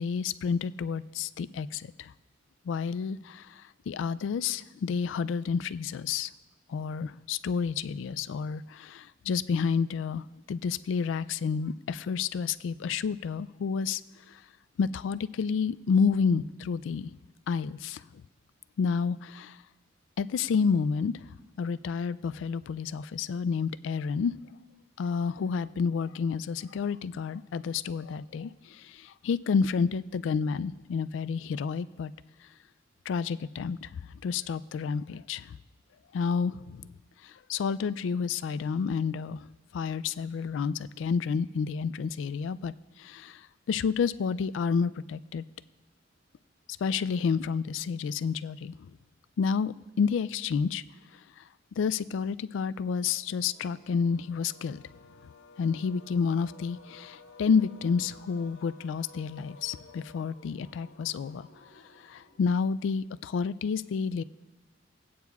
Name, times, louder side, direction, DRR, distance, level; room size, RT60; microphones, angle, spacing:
voice 1, 0.0-2.1 2.7-6.3 6.7-14.0 14.3-14.4 14.8-17.1 17.5-18.2 18.8-19.6 20.2-21.1 21.6-24.4 25.0-32.1 33.1-35.6 36.1-36.9 37.2-39.5 39.7-43.4 43.7-45.4 46.8-48.9 49.4-50.8 51.4-51.5 51.8-54.8 55.6-61.5 62.0-64.2, left 5 dB, 70° left, 15 dB, 0.3 m, -30 dB
sound 1, 53.5-62.8, left 3 dB, 85° left, 0.9 m, -54 dB
20.0 x 8.5 x 2.3 m, 1.1 s
head